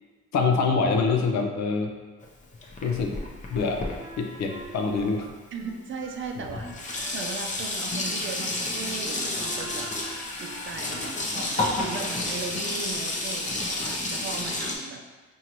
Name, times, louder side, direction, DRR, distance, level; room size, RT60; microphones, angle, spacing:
voice 1, 0.3-1.9 2.8-3.2 3.5-3.8 4.2-5.3, left 4 dB, 65° left, 3 dB, 0.6 m, -25 dB
Sink (filling or washing), 2.2-5.3 6.1-6.2 6.4-14.7, left 2 dB, 25° left, 0.6 m, -31 dB
Wind instrument woodwind instrument, 3.5-7.7 8.0-8.2 8.5-10.8, right 2 dB, 20° right, 0.9 m, -45 dB
voice 2, 5.5-6.7 7.1-15.0, right 5 dB, 40° right, 3 dB, 0.5 m, -38 dB
4.5 x 2.7 x 3.0 m, 1.3 s
cardioid pair, 90°, 30 cm